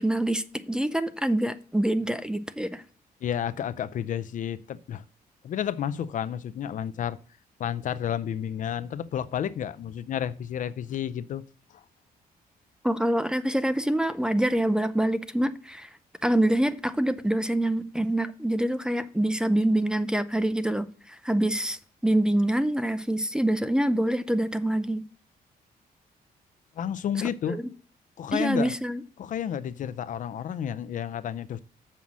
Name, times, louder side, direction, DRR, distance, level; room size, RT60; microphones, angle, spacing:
voice 1, 0.0-2.8 12.8-15.9 16.2-25.0 27.5-27.7 28.3-29.0, right 1 dB, 5° right, 0.5 m, -25 dB
voice 2, 3.2-5.0 5.4-7.2 7.6-11.4 11.7-11.8 26.8-27.6 28.2-28.7 29.2-31.6, left 9 dB, 55° left, 0.5 m, -31 dB
7.3 x 5.6 x 6.1 m
cardioid pair, 125°, 16 cm